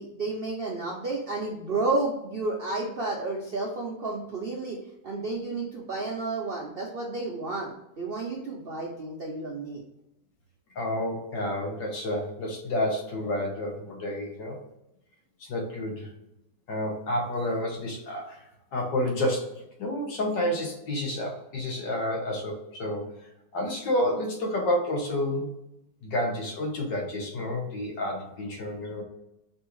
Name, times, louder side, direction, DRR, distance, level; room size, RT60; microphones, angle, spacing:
voice 1, 0.0-4.8 5.0-9.8, right 3 dB, 65° right, -2 dB, 0.5 m, -31 dB
voice 2, 10.8-14.6 15.4-16.1 16.7-18.4 18.7-19.5 19.8-23.1 23.5-25.5 26.0-29.0, left 1 dB, 80° left, 0 dB, 1.8 m, -29 dB
5.3 x 2.7 x 3.0 m, 0.86 s
omnidirectional pair, 1.9 m